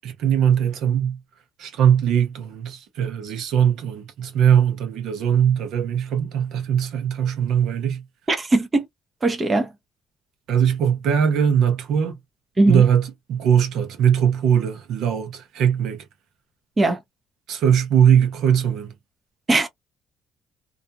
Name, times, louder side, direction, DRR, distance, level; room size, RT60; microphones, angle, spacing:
voice 1, 0.0-1.2 1.6-8.0 10.5-12.1 12.7-16.0 17.5-18.9, right 8 dB, 80° right, 0.8 m, -20 dB
voice 2, 8.3-8.9 9.2-9.7 12.6-12.8 16.8-17.0 19.5-19.7, right 2 dB, 25° right, 0.7 m, -19 dB
2.5 x 2.2 x 2.7 m
cardioid pair, 100°, 0 cm